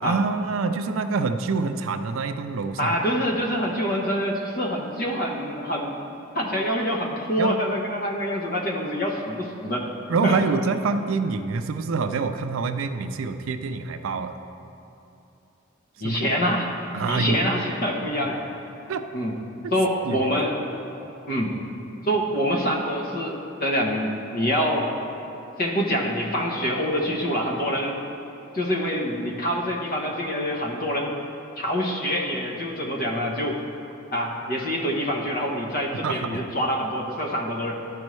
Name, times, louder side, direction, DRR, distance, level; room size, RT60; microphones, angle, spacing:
voice 1, 0.0-3.0 7.4-7.5 10.1-14.4 16.0-16.2 16.9-17.4 18.9-19.1 20.0-20.2 36.0-36.4, right 4 dB, 75° right, 8 dB, 0.4 m, -26 dB
voice 2, 2.8-5.9 6.3-9.9 10.2-10.4 16.0-16.7 17.1-18.4 19.1-19.3 19.7-20.6 21.3-21.5 22.0-24.9 25.6-28.0 28.5-31.1 31.6-33.6 34.1-37.7, equal, 50° left, -1 dB, 1.0 m, -25 dB
11.5 x 5.3 x 3.1 m, 2.7 s
head